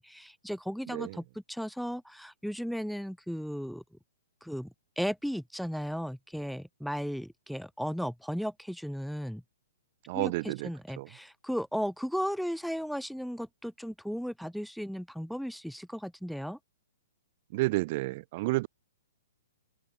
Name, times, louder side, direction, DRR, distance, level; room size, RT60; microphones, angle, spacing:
voice 1, 0.0-3.8 4.4-9.4 10.1-16.6, equal, ahead, 1.5 m, -35 dB
voice 2, 0.9-1.2 10.1-10.7 11.0-11.1 17.5-18.7, right 21 dB, 45° right, 3.0 m, -30 dB
hypercardioid pair, 140°, 0 cm